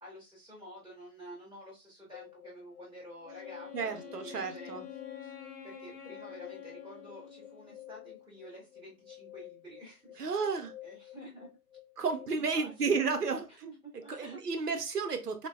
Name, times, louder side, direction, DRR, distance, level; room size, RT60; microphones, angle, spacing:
voice 1, 0.0-4.8 5.2-5.3 5.6-10.5 10.8-11.5 12.3-14.7, right 1 dB, ahead, -21 dB, 0.5 m, -50 dB
sound 1, 2.1-12.3, left 14 dB, 50° left, 0.5 m, -50 dB
Wind instrument woodwind instrument, 3.2-8.0, left 7 dB, 85° left, 0.9 m, -49 dB
voice 2, 3.7-4.9 10.2-10.7 12.0-13.4 14.1-15.5, right 4 dB, 80° right, 7 dB, 0.8 m, -32 dB
3.8 x 2.1 x 2.4 m, 0.27 s
figure-of-eight pair, 135°, 46 cm